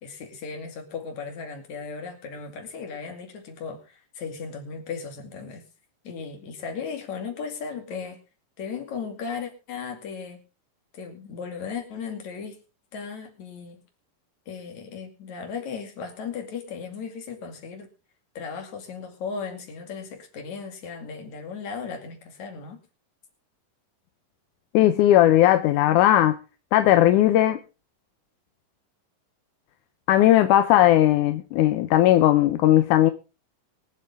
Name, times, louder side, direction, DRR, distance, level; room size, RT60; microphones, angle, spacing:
voice 1, 0.0-5.6 6.0-8.2 8.6-10.4 10.9-12.6 12.9-13.8 14.5-17.9 18.4-22.8, left 5 dB, 55° left, 3.6 m, -36 dB
voice 2, 24.7-26.4 26.7-27.6 30.1-33.1, left 13 dB, 75° left, 2.1 m, -17 dB
23.5 x 8.0 x 3.5 m
omnidirectional pair, 4.0 m